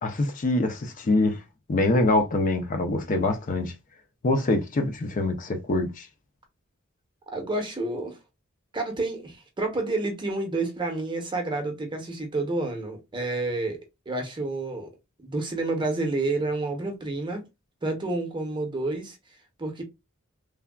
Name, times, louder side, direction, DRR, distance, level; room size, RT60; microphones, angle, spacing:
voice 1, 0.0-1.4 1.7-3.7 4.2-6.1, left 2 dB, 40° left, 0.4 m, -24 dB
voice 2, 7.3-8.2 8.7-13.8 14.1-14.9 15.2-17.4 17.8-19.2 19.6-19.8, right 2 dB, 20° right, 0.7 m, -29 dB
3.3 x 2.2 x 2.2 m
head